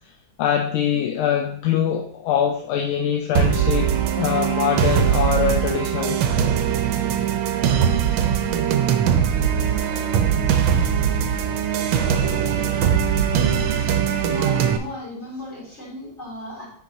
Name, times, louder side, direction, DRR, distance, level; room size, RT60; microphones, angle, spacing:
voice 1, 0.4-3.9 4.2-6.2, left 9 dB, 80° left, 3 dB, 1.4 m, -23 dB
sound 1, 3.4-14.8, right 8 dB, 75° right, 1.4 m, -21 dB
voice 2, 14.2-16.7, left 1 dB, 30° left, -5 dB, 3.3 m, -35 dB
9.8 x 4.7 x 2.7 m, 0.62 s
omnidirectional pair, 2.3 m